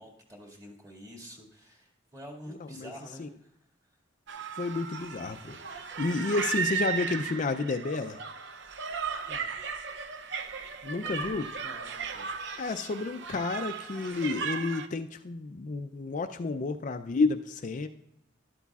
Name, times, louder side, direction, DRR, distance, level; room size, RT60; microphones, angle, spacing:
voice 1, 0.0-3.5 8.8-8.9 9.3-9.5 11.0-12.3, equal, 20° right, 1 dB, 2.0 m, -48 dB
voice 2, 2.6-2.9 3.2-3.3 4.6-8.2 10.8-11.5 12.6-17.9, left 3 dB, 40° left, 8 dB, 0.4 m, -31 dB
sound 1, 4.3-14.9, right 6 dB, 70° right, 0.6 m, -36 dB
12.5 x 11.5 x 2.4 m, 0.79 s
head